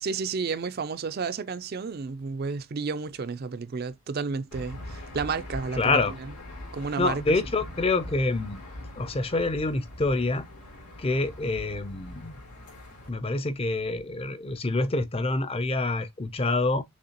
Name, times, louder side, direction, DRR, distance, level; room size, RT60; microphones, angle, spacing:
voice 1, 0.0-6.3 6.7-7.2, right 4 dB, 45° right, 0.4 m, -31 dB
Aircraft / Engine, 4.5-13.1, left 1 dB, 90° left, 3.1 m, -42 dB
voice 2, 5.7-6.1 7.0-8.6 9.0-10.4 11.0-12.3 13.1-16.8, left 2 dB, 25° left, 0.5 m, -26 dB
6.5 x 2.8 x 2.9 m
head